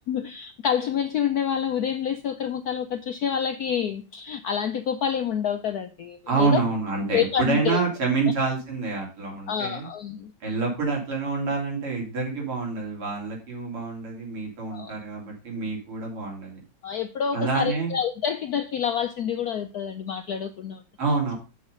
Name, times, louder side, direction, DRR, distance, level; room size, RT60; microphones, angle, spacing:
voice 1, 0.1-6.6 7.1-7.8 9.5-10.3 14.7-14.9 16.8-20.8, left 8 dB, 75° left, 8 dB, 0.8 m, -27 dB
voice 2, 6.3-9.9 10.4-16.6 17.3-18.0 21.0-21.3, right 4 dB, 85° right, -1 dB, 4.2 m, -27 dB
7.5 x 5.8 x 5.4 m, 0.33 s
omnidirectional pair, 2.3 m